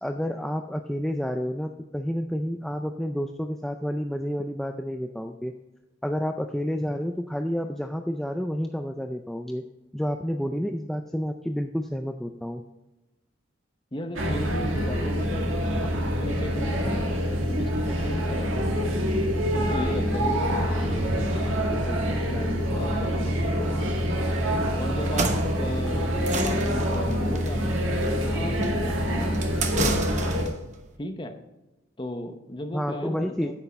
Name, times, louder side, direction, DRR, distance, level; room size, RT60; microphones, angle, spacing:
voice 1, 0.0-5.5 6.0-9.6 9.9-12.6 32.7-33.5, equal, ahead, 5 dB, 0.3 m, -30 dB
voice 2, 13.9-18.9 19.5-24.3 24.8-27.8 28.2-30.3 31.0-31.4 32.0-33.5, left 1 dB, 25° left, 7 dB, 0.8 m, -36 dB
sound 1, 14.2-30.5, equal, 85° right, 1.7 m, -26 dB
sound 2, 25.0-30.6, right 3 dB, 35° right, 0.9 m, -32 dB
9.7 x 8.1 x 4.2 m, 1.0 s
head